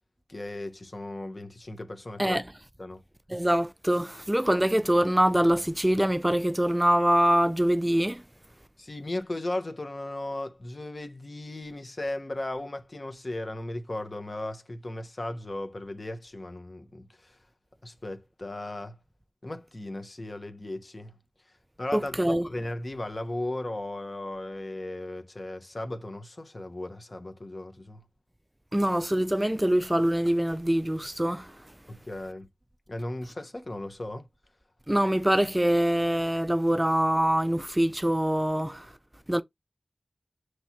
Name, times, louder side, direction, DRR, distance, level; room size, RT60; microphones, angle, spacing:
voice 1, 0.3-2.4 2.8-3.0 8.8-17.3 17.8-18.9 19.4-21.1 21.8-28.0 31.9-32.5 32.9-34.3, left 1 dB, 55° left, 1.0 m, -36 dB
voice 2, 3.3-8.2 21.9-22.5 28.7-31.5 34.9-38.9 39.3-39.4, right 1 dB, 15° right, 0.3 m, -24 dB
5.9 x 3.1 x 2.9 m
wide cardioid pair, 50°, 0 cm